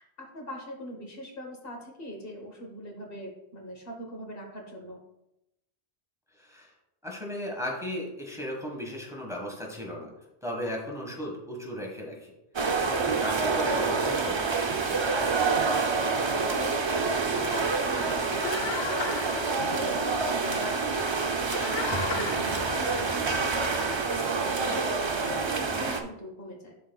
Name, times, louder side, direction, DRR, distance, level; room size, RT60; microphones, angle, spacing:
voice 1, 0.0-5.0 16.5-21.2 21.4-26.8, equal, 60° left, 1 dB, 1.4 m, -41 dB
voice 2, 6.4-6.7 7.0-10.1 10.4-15.0 22.2-22.5, left 1 dB, 5° right, -1 dB, 1.4 m, -37 dB
sound 1, 12.6-26.0, right 4 dB, 40° right, 0.4 m, -27 dB
sound 2, 17.4-23.1, left 5 dB, 75° left, 0.9 m, -37 dB
11.5 x 4.2 x 2.3 m, 0.87 s
omnidirectional pair, 1.1 m